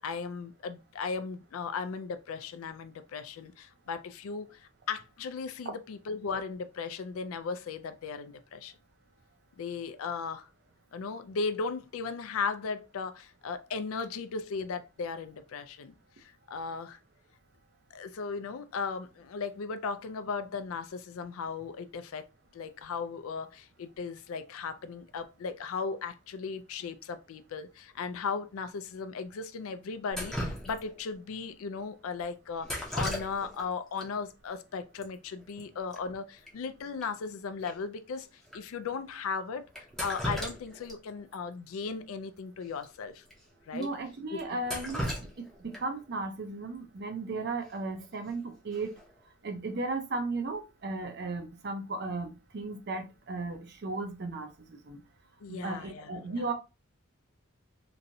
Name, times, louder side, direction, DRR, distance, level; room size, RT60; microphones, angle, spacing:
voice 1, 0.0-8.7 9.6-10.5 10.9-17.0 17.9-22.2 22.5-38.3 38.5-39.7 40.0-43.2 43.7-43.9 44.3-44.4 55.4-56.5, left 5 dB, 75° left, 0.4 m, -37 dB
Drip, 30.1-31.1 32.6-33.7 34.0-34.1 35.0-35.1 35.4-35.6 35.9-36.0 36.5-36.6 37.0-37.1 37.7-37.8 38.5-38.6 39.7-41.0 41.3-41.4 42.7-42.8 43.3-43.4 43.8-43.9 44.4-46.0 48.0-48.3 48.7-49.1, equal, ahead, 0.6 m, -36 dB
voice 2, 43.7-45.1 45.4-48.9 49.4-55.0 55.5-56.5, right 3 dB, 50° right, 0.5 m, -35 dB
3.0 x 2.6 x 2.6 m
head